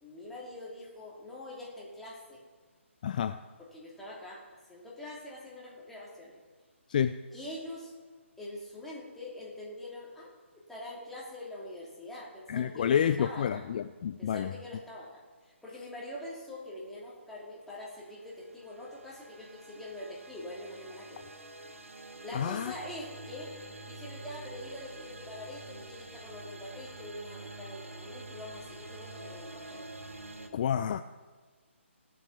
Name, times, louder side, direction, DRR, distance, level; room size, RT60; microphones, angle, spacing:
voice 1, 0.0-2.4 3.6-6.4 7.3-7.9 8.4-13.6 14.2-15.2 15.6-21.2 22.2-23.5 23.8-29.9, left 1 dB, 5° left, -6 dB, 2.9 m, -44 dB
voice 2, 3.0-3.4 6.9-7.2 12.5-14.5 22.3-22.7 30.5-31.0, left 8 dB, 40° left, 11 dB, 0.4 m, -29 dB
sound 1, 18.2-30.5, right 2 dB, 85° right, 1.5 m, -47 dB
17.5 x 7.7 x 5.9 m, 1.4 s
figure-of-eight pair, 145°, 7 cm